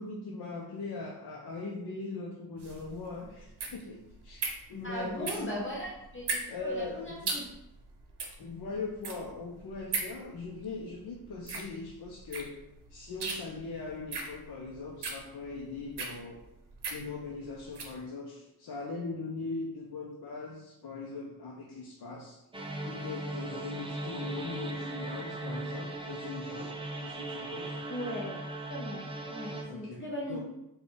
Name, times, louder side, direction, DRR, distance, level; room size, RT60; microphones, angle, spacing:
voice 1, 0.0-4.4 4.7-5.6 6.5-7.4 8.4-12.6 12.9-16.4 16.9-22.4 22.8-26.7 27.0-27.8 29.6-30.4, left 3 dB, 70° left, -2 dB, 0.6 m, -40 dB
sound 1, 2.6-18.0, right 4 dB, 85° right, 0.7 m, -39 dB
voice 2, 4.8-7.5 27.9-28.4 28.7-30.4, equal, 30° left, -4 dB, 0.7 m, -38 dB
sound 2, 22.5-29.6, right 2 dB, 15° right, 0.4 m, -38 dB
3.6 x 2.3 x 3.9 m, 0.88 s
wide cardioid pair, 130°, 39 cm